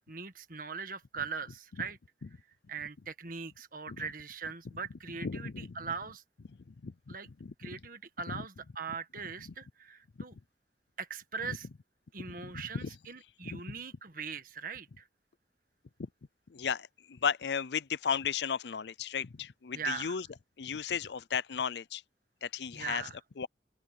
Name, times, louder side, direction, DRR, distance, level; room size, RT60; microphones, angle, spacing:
voice 1, 0.1-2.0 2.7-6.2 7.1-7.3 7.6-10.3 11.0-11.7 12.1-15.0 19.7-20.2 22.7-23.2, right 5 dB, 50° right, 1.7 m, -40 dB
voice 2, 5.2-5.8 6.7-7.2 7.4-7.5 8.3-8.4 12.3-12.9 13.4-13.6 16.5-20.2 20.6-22.0 22.4-23.0 23.4-23.5, left 7 dB, 70° left, 0.5 m, -35 dB
open air
head